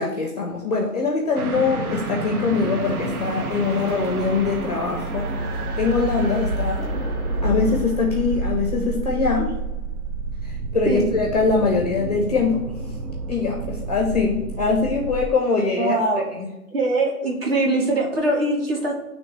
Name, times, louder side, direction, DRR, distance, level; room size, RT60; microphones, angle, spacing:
voice 1, 0.0-5.3 5.8-6.8 7.4-9.5 10.4-12.6 13.3-16.0 16.4-16.5, left 4 dB, 30° left, 1 dB, 0.6 m, -22 dB
sound 1, 1.3-15.3, right 2 dB, 75° right, 0.9 m, -29 dB
sound 2, 1.7-7.8, left 1 dB, ahead, 1.3 m, -42 dB
voice 2, 15.8-16.3 16.7-18.9, right 2 dB, 40° right, -1 dB, 1.4 m, -22 dB
9.5 x 3.2 x 3.1 m, 1.0 s
hypercardioid pair, 165°, 44 cm